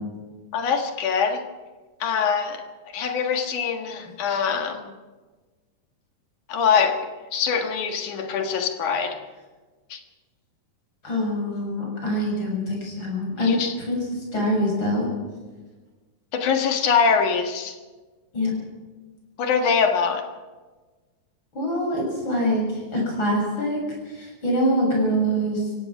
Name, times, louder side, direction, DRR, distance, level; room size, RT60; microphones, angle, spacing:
voice 1, 0.5-1.4 2.0-2.7 2.9-4.9 6.5-7.1 7.3-9.2 9.9-10.0 13.4-13.7 16.3-17.8 19.4-20.3, left 6 dB, 75° left, 3.1 m, -23 dB
voice 2, 11.0-14.0 14.3-15.1 18.3-18.5 21.5-22.6 22.9-23.8 24.1-25.7, equal, 35° left, 7.9 m, -24 dB
25.5 x 17.0 x 6.1 m
omnidirectional pair, 3.6 m